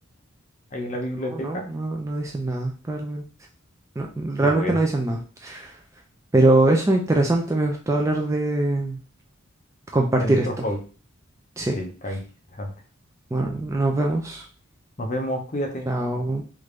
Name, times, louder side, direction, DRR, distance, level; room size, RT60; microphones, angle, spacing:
voice 1, 0.7-1.6 4.4-4.8 10.2-10.8 11.7-12.2 12.6-12.7 15.0-15.9, equal, 35° left, 2 dB, 0.7 m, -29 dB
voice 2, 1.3-3.2 4.0-5.7 6.3-9.0 9.9-10.6 11.6-11.8 13.3-14.4 15.9-16.4, right 2 dB, 15° right, 1 dB, 0.3 m, -23 dB
3.4 x 2.5 x 3.1 m, 0.37 s
head